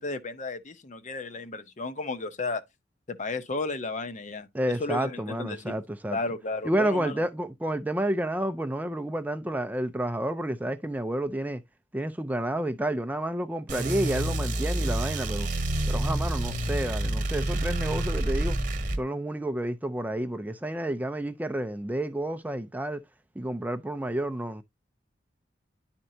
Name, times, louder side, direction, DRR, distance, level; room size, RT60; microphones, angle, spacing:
voice 1, 0.0-2.6 3.1-4.5 4.8-5.8 6.1-7.2, left 3 dB, 40° left, 0.7 m, -33 dB
voice 2, 4.5-6.2 6.6-11.6 11.9-15.5 15.9-18.6 19.0-23.0 23.4-24.6, right 1 dB, 10° right, 0.4 m, -30 dB
sound 1, 13.7-19.0, right 1 dB, 45° right, 1.1 m, -28 dB
11.0 x 4.4 x 2.7 m
head